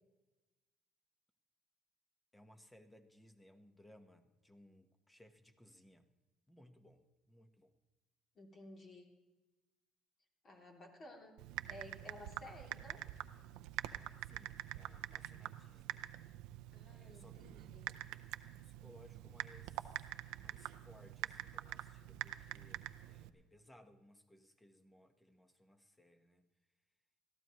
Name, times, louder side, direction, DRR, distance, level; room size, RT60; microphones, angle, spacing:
voice 1, 2.3-6.1 6.5-7.8 14.2-16.1 16.9-17.6 17.9-18.1 18.6-20.1 20.4-26.5, left 1 dB, 10° left, 7 dB, 1.2 m, -63 dB
voice 2, 8.3-9.1 10.4-11.4 11.7-13.0 16.7-17.9, left 1 dB, 40° left, 1 dB, 2.9 m, -55 dB
Typing, 11.4-23.3, right 15 dB, 85° right, 0.5 m, -46 dB
21.0 x 14.0 x 3.1 m, 1.1 s
cardioid pair, 100°, 0 cm